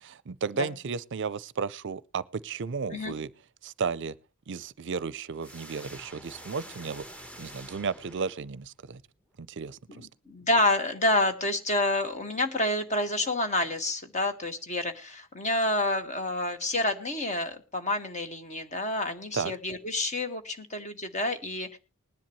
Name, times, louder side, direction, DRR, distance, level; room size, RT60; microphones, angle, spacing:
voice 1, 0.3-3.3 3.6-4.1 4.5-7.0 7.4-9.0 9.4-10.1 19.3-19.5, right 5 dB, 60° right, 0.5 m, -33 dB
sound 1, 5.4-8.8, right 1 dB, 5° left, 1.1 m, -47 dB
voice 2, 9.9-21.8, left 1 dB, 35° left, 1.7 m, -28 dB
20.0 x 10.5 x 3.1 m
head